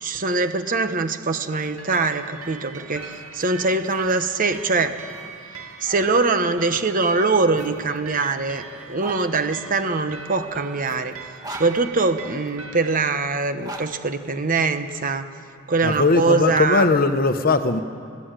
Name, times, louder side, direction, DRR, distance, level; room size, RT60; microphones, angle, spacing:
voice 1, 0.0-5.0 5.8-11.1 11.5-15.3 15.7-16.9, right 3 dB, 40° right, 1.1 m, -23 dB
sound 1, 1.4-6.1 7.0-9.2 10.1-12.5 13.3-14.9, right 1 dB, 20° right, 1.8 m, -43 dB
sound 2, 1.5-13.1, right 5 dB, 85° right, 2.1 m, -40 dB
voice 2, 15.8-17.8, left 3 dB, 45° left, 1.0 m, -19 dB
21.5 x 15.5 x 9.0 m
head